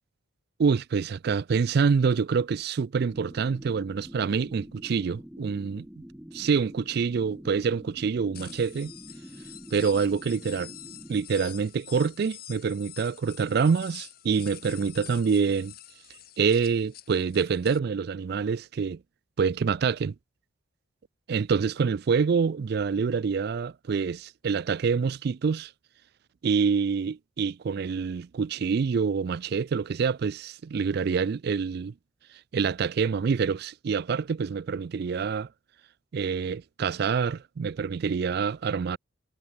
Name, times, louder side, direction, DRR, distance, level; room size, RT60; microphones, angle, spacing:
voice 1, 0.6-5.9 6.3-8.9 9.7-10.7 11.1-15.7 16.4-19.0 19.4-20.1 21.3-25.7 26.4-31.9 32.5-35.5 36.1-39.0, right 5 dB, 50° right, 0.3 m, -26 dB
sound 1, 2.9-11.3, equal, 5° right, 0.7 m, -46 dB
sound 2, 8.3-17.8, left 13 dB, 50° left, 5.0 m, -47 dB
head